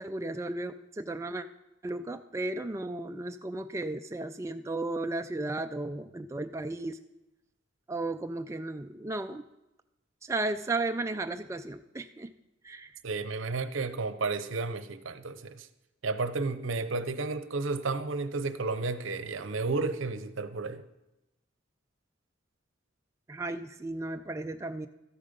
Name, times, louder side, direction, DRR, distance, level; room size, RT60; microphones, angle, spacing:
voice 1, 0.0-1.5 1.8-7.0 7.9-9.4 10.2-12.3 12.6-13.0 23.3-24.9, right 2 dB, 15° right, 0.3 m, -34 dB
voice 2, 13.0-15.7 16.0-20.9, right 3 dB, 75° right, 0.7 m, -32 dB
13.5 x 8.7 x 5.4 m
head